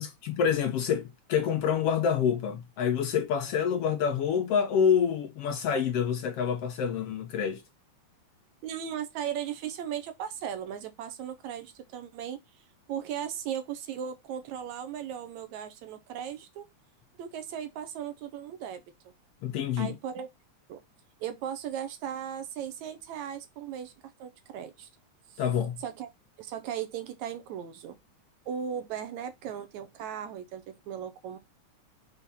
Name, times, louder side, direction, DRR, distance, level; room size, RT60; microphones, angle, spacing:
voice 1, 0.0-7.6 19.4-20.0 25.4-25.8, left 7 dB, 70° left, 1.6 m, -27 dB
voice 2, 8.6-12.4 12.9-16.7 17.2-19.1 19.8-20.3 20.7-20.8 21.2-24.9 25.3-25.4 25.8-26.1 26.4-28.0 28.5-31.4, right 9 dB, 75° right, 2.3 m, -37 dB
5.8 x 3.9 x 5.6 m
omnidirectional pair, 3.3 m